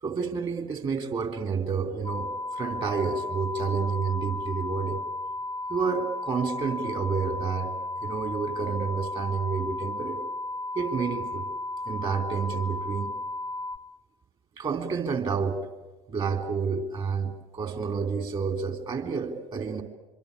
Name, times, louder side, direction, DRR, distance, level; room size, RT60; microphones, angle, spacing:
voice 1, 0.0-5.0 5.7-10.3 10.7-11.5 11.9-13.2 14.6-15.6 16.1-19.8, right 5 dB, 35° right, 6 dB, 3.7 m, -29 dB
sound 1, 2.0-13.8, left 2 dB, 20° left, 0.8 m, -34 dB
25.5 x 24.5 x 8.6 m, 1.2 s
figure-of-eight pair, 70°, 15 cm